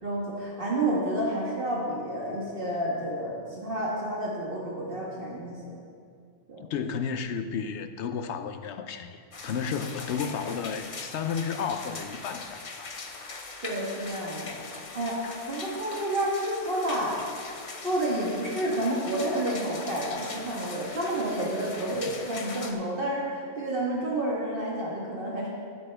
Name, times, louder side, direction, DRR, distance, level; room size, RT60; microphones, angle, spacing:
voice 1, 0.0-5.8 6.5-6.6 13.6-14.6 14.9-17.1 17.8-25.5, right 1 dB, 50° right, -5 dB, 1.6 m, -30 dB
voice 2, 6.7-12.9 21.8-22.2, left 6 dB, 75° left, 9 dB, 0.9 m, -33 dB
sound 1, 9.3-22.7, left 3 dB, 35° left, 0.7 m, -41 dB
15.0 x 7.8 x 3.4 m, 2.2 s
omnidirectional pair, 1.2 m